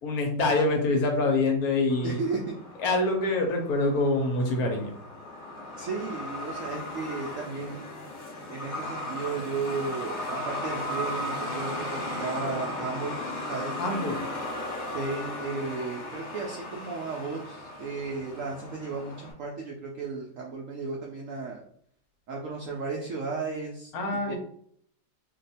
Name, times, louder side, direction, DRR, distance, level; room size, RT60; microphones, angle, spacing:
voice 1, 0.0-2.2 2.8-4.9 13.8-14.3 23.9-24.4, left 2 dB, 70° left, 2 dB, 1.0 m, -25 dB
Truck, 1.9-19.3, left 1 dB, 45° left, 1.1 m, -36 dB
voice 2, 2.0-2.5 5.8-7.8 8.5-13.1 13.5-13.8 14.9-21.6 22.3-23.9 24.3-24.4, right 4 dB, 75° right, -1 dB, 0.7 m, -34 dB
2.7 x 2.2 x 4.0 m, 0.65 s
omnidirectional pair, 1.9 m